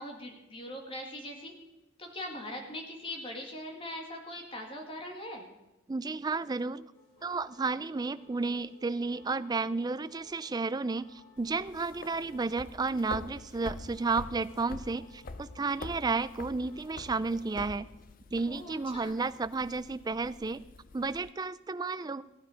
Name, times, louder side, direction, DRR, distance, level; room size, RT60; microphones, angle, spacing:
voice 1, 0.0-1.5 2.0-5.5 18.5-19.1, left 1 dB, 25° left, 2 dB, 2.0 m, -41 dB
voice 2, 5.9-6.8 7.2-17.9 18.3-20.6 20.9-22.2, right 3 dB, 20° right, 15 dB, 0.3 m, -32 dB
sound 1, 6.9-17.5, left 3 dB, 75° left, 5.8 m, -60 dB
sound 2, 11.4-21.3, left 3 dB, 40° left, 0.6 m, -46 dB
16.0 x 10.0 x 5.0 m, 0.98 s
head